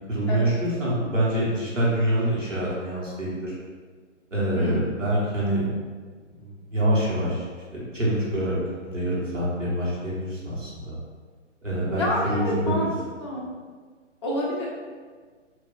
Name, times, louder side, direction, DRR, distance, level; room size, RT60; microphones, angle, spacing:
voice 1, 0.1-3.6 4.3-5.7 6.4-7.5 7.7-8.6 8.8-11.0 11.6-12.0 12.3-12.8, right 1 dB, 80° right, -7 dB, 1.5 m, -25 dB
voice 2, 4.5-4.9 12.0-12.9 13.2-13.5 14.2-14.7, left 1 dB, 25° left, -5 dB, 0.5 m, -28 dB
2.8 x 2.3 x 3.8 m, 1.5 s
figure-of-eight pair, 130°, 38 cm